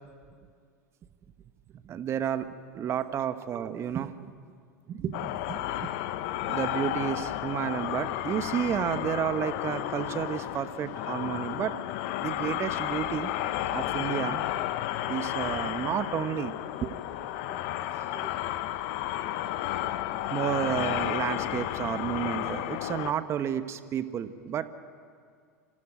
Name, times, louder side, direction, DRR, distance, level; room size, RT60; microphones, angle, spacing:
voice 1, 1.8-2.5 2.7-4.3 4.9-5.9 6.5-11.7 12.2-13.3 13.7-14.4 15.1-16.5 16.8-17.0 17.5-17.6 18.1-18.3 20.3-24.7, right 9 dB, 35° right, 11 dB, 1.1 m, -31 dB
sound 1, 5.1-23.1, left 13 dB, 55° left, 0.9 m, -32 dB
26.0 x 15.5 x 9.2 m, 2.1 s
figure-of-eight pair, 85°, 8 cm